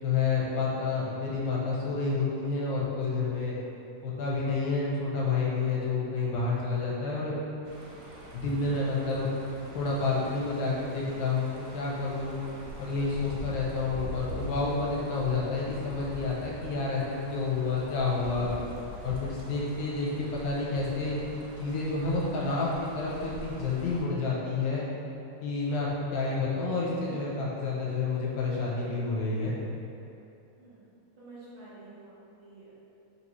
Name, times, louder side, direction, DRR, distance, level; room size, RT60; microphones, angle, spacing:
voice 1, 0.0-3.5 4.0-7.4 8.3-9.3 9.7-12.4 12.8-18.5 19.0-21.2 21.6-24.8 25.4-29.5, left 4 dB, 80° left, -5 dB, 2.0 m, -29 dB
sound 1, 7.6-24.0, equal, 80° right, 2.2 m, -43 dB
voice 2, 27.0-27.6 30.6-30.8 31.2-32.7, right 2 dB, 60° right, -12 dB, 1.4 m, -48 dB
4.7 x 2.7 x 3.0 m, 2.8 s
omnidirectional pair, 3.7 m